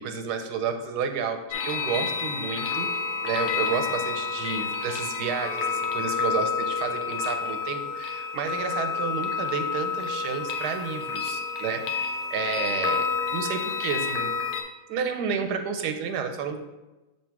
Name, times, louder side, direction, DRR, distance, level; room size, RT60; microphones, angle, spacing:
voice 1, 0.0-2.9 3.2-14.3 14.9-16.6, right 6 dB, 85° right, 6 dB, 1.2 m, -31 dB
sound 1, 1.5-14.6, left 5 dB, 80° left, 1.2 m, -29 dB
6.7 x 3.1 x 4.6 m, 1.1 s
omnidirectional pair, 1.7 m